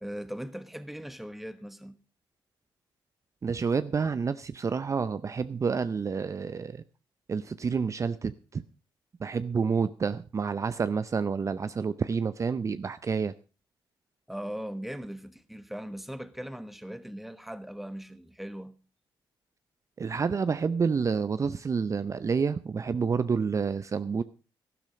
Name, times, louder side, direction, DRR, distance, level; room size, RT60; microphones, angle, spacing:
voice 1, 0.0-2.0 14.3-18.8, equal, ahead, 1.2 m, -39 dB
voice 2, 3.4-6.8 7.3-8.6 9.2-13.3 20.0-24.2, right 5 dB, 40° right, 0.6 m, -29 dB
12.5 x 12.0 x 5.1 m
cardioid pair, 85°, 8 cm